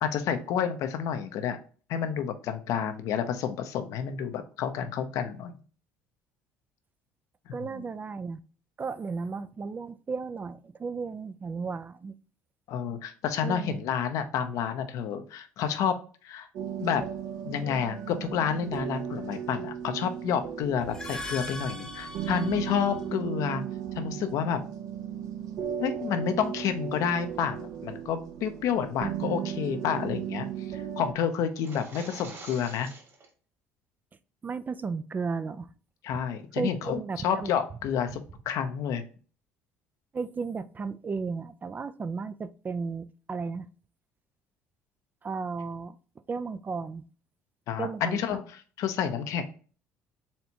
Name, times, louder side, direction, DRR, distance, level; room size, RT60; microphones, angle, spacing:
voice 1, 0.0-1.6 1.9-5.5 7.5-7.9 12.7-16.0 16.2-16.5 16.8-17.0 17.4-23.6 24.0-24.6 25.8-30.5 30.7-32.9 36.0-39.0 47.7-48.4 48.8-49.4, left 8 dB, 65° left, 0.6 m, -29 dB
voice 2, 7.5-8.4 8.8-12.1 13.4-13.8 34.4-35.7 36.6-37.5 40.1-43.7 45.2-46.0 46.3-47.0 47.8-48.4, right 5 dB, 30° right, 0.3 m, -34 dB
sound 1, 16.5-31.1, right 9 dB, 65° right, 0.7 m, -36 dB
sound 2, 20.8-23.1, left 2 dB, 10° left, 0.9 m, -39 dB
sound 3, 31.5-33.3, right 3 dB, 45° right, 1.9 m, -46 dB
4.3 x 3.3 x 2.8 m
hypercardioid pair, 65°, 6 cm